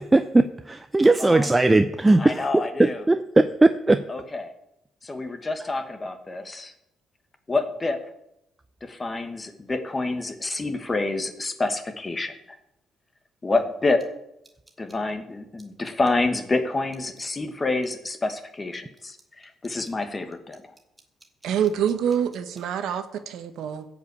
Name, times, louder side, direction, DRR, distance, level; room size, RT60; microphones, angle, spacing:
voice 1, 0.0-2.4 2.8-4.0, right 2 dB, 15° right, 9 dB, 0.5 m, -19 dB
voice 2, 1.2-1.6 2.2-3.0 4.1-4.5 5.0-6.7 7.5-8.0 8.8-12.6 13.4-14.0 14.8-20.7, left 3 dB, 20° left, 8 dB, 1.3 m, -28 dB
voice 3, 21.4-23.9, right 8 dB, 80° right, 10 dB, 1.1 m, -26 dB
15.5 x 5.3 x 8.2 m, 0.84 s
cardioid pair, 135°, 0 cm